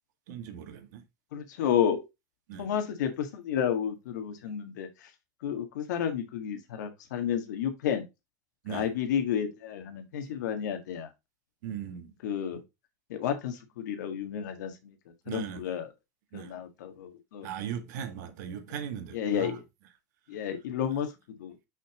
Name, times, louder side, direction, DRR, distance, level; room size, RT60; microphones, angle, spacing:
voice 1, 0.3-1.0 2.5-2.7 8.6-8.9 10.2-10.3 11.6-12.1 15.3-15.7 16.3-16.6 17.4-19.6, right 8 dB, 75° right, 1.8 m, -38 dB
voice 2, 1.3-2.0 2.6-5.1 5.4-8.0 8.7-11.1 12.2-12.6 13.1-14.9 15.3-15.9 16.3-17.5 19.1-19.5 20.3-21.5, left 9 dB, 85° left, 1.7 m, -31 dB
6.0 x 5.7 x 3.7 m
hypercardioid pair, 100°, 9 cm